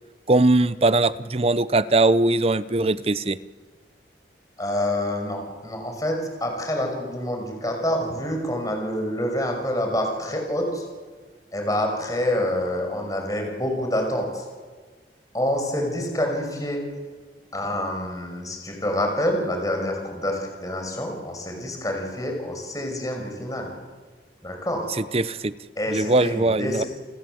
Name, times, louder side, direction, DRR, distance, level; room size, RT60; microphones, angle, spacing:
voice 1, 0.3-3.4 25.0-25.5 25.9-26.8, right 2 dB, 35° right, 15 dB, 0.7 m, -20 dB
voice 2, 4.6-10.8 11.5-14.4 15.3-16.8 17.5-23.7 24.4-24.9 25.8-26.9, left 1 dB, 20° left, 3 dB, 5.9 m, -27 dB
30.0 x 20.5 x 7.9 m, 1.5 s
head